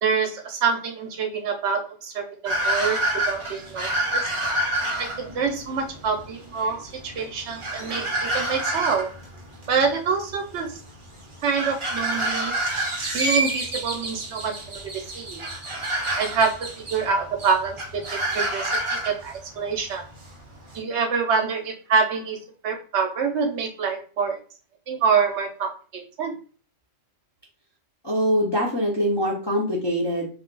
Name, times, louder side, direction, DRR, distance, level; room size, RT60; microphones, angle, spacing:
voice 1, 0.0-3.0 3.3-4.3 5.0-9.1 9.7-10.8 11.4-12.5 13.1-15.4 16.1-20.0 20.7-22.4 22.6-24.4 24.9-26.3, right 5 dB, 65° right, 4 dB, 0.8 m, -26 dB
sound 1, 2.4-20.8, right 1 dB, 40° right, 0.5 m, -29 dB
voice 2, 28.0-30.3, equal, 35° left, -4 dB, 0.4 m, -23 dB
2.4 x 2.2 x 3.7 m, 0.40 s
omnidirectional pair, 1.3 m